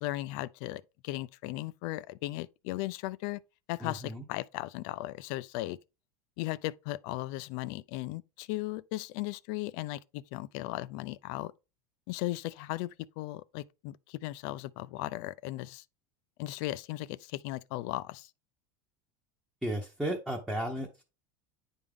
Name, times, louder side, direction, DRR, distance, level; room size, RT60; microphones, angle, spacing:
voice 1, 0.0-3.4 3.7-5.8 6.4-11.5 12.1-15.8 16.4-18.3, left 17 dB, 60° left, 0.4 m, -37 dB
voice 2, 3.8-4.2 19.6-21.0, right 1 dB, 5° right, 0.8 m, -34 dB
9.6 x 3.5 x 3.6 m
supercardioid pair, 150°, 12 cm